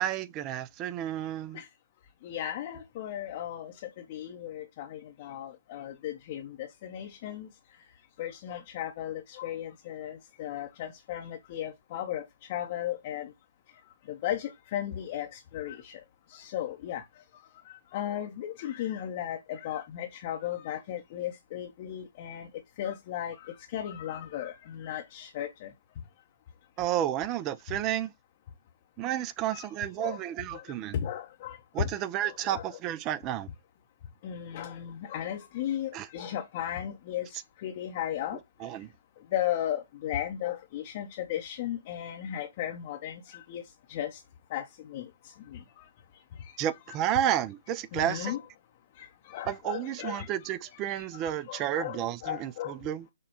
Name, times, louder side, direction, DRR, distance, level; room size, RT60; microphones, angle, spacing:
voice 1, 0.0-1.6 26.8-28.1 29.0-31.0 31.7-33.5 35.9-36.1 38.6-38.9 46.6-48.3 49.5-53.1, right 11 dB, 25° right, 0.3 m, -31 dB
voice 2, 2.2-3.7 4.1-7.5 8.2-13.3 14.1-16.0 16.3-17.0 17.7-22.5 22.8-25.7 27.7-27.8 29.5-29.7 30.0-30.2 30.5-30.6 30.9-31.9 32.2-32.8 34.2-38.4 39.3-43.6 43.9-44.2 44.5-45.1 45.5-45.9 47.9-48.4 49.0-50.5 50.9-51.1 51.5-52.7, left 11 dB, 40° left, 0.6 m, -36 dB
6.2 x 2.2 x 2.8 m
figure-of-eight pair, 130°, 0 cm